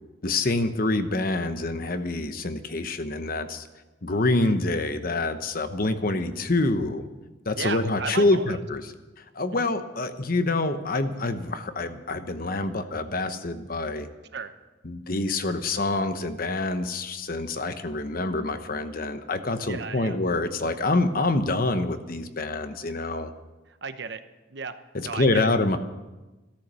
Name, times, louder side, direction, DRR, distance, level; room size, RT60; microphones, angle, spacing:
voice 1, 0.2-3.7 4.0-7.1 7.5-8.8 9.2-14.1 14.8-23.3 24.9-25.8, left 2 dB, 50° left, 9 dB, 1.0 m, -26 dB
voice 2, 4.3-4.6 7.5-8.6 9.5-9.7 14.3-14.5 19.7-20.2 23.7-24.2 24.5-25.5, right 5 dB, 60° right, 10 dB, 1.0 m, -35 dB
14.0 x 13.0 x 6.9 m, 1.1 s
head